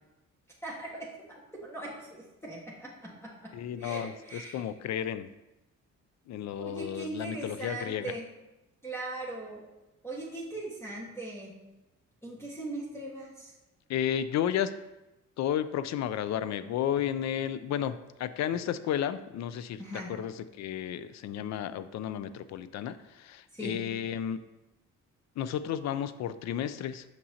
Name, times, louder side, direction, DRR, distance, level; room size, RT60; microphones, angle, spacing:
voice 1, 0.6-4.6 6.6-8.3 8.8-9.6 10.0-11.5 12.2-13.5 19.8-20.1 23.5-23.8, right 2 dB, 10° left, -5 dB, 1.4 m, -40 dB
voice 2, 3.5-5.3 6.3-8.1 13.9-14.7 15.4-19.8 20.1-24.4 25.4-27.0, left 10 dB, 65° left, 13 dB, 0.4 m, -32 dB
6.0 x 5.8 x 2.8 m, 0.98 s
cardioid pair, 90°, 30 cm